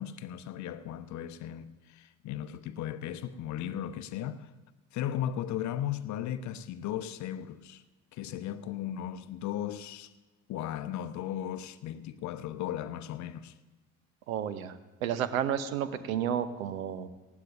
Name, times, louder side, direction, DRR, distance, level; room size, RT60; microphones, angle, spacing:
voice 1, 0.0-4.5 4.9-7.8 8.1-10.1 10.5-13.5, left 11 dB, 40° left, 0.7 m, -36 dB
voice 2, 14.3-17.1, right 9 dB, 70° right, 0.8 m, -32 dB
19.5 x 15.0 x 2.6 m
figure-of-eight pair, 55°, 43 cm